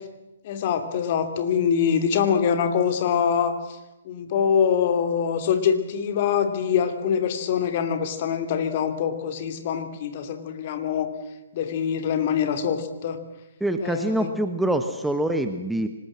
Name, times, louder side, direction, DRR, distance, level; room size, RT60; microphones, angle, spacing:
voice 1, 0.4-3.6 4.0-11.1 11.5-13.2 13.8-14.3, left 7 dB, 40° left, 8 dB, 2.7 m, -24 dB
voice 2, 13.6-15.9, right 1 dB, 5° right, 7 dB, 1.2 m, -25 dB
25.5 x 19.5 x 7.6 m, 1.0 s
figure-of-eight pair, 130°, 0 cm